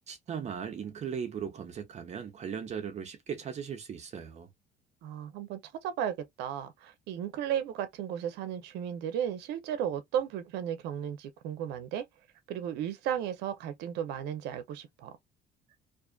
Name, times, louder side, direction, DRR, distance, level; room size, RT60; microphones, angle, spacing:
voice 1, 0.1-4.5, right 7 dB, 40° right, 0.6 m, -38 dB
voice 2, 5.0-12.0 12.5-15.1, right 9 dB, 85° right, 0.6 m, -34 dB
2.5 x 2.4 x 2.3 m
cardioid pair, 110°, 17 cm